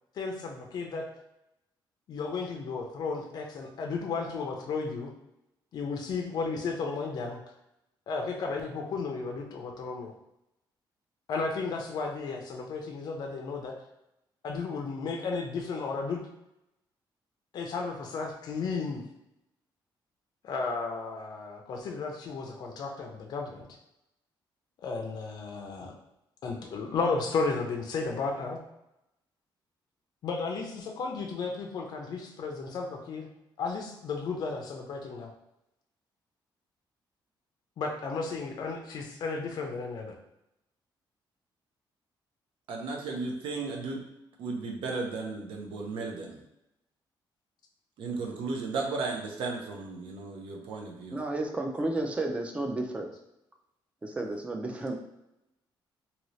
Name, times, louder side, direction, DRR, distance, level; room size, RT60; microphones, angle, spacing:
voice 1, 0.1-1.1 2.1-5.1 5.7-7.4 8.1-10.1 11.3-13.7 14.4-16.2 17.5-19.0 20.4-23.8 24.8-25.9 26.4-28.6 30.2-33.3 33.6-35.3 37.8-40.2, left 4 dB, 50° left, 1 dB, 0.4 m, -33 dB
voice 2, 42.7-44.1 44.4-46.4 48.0-51.2, right 3 dB, 90° right, 1 dB, 0.6 m, -35 dB
voice 3, 51.1-53.1 54.0-54.9, right 2 dB, 15° right, 3 dB, 0.4 m, -32 dB
2.7 x 2.6 x 3.1 m, 0.86 s
cardioid pair, 170°, 9 cm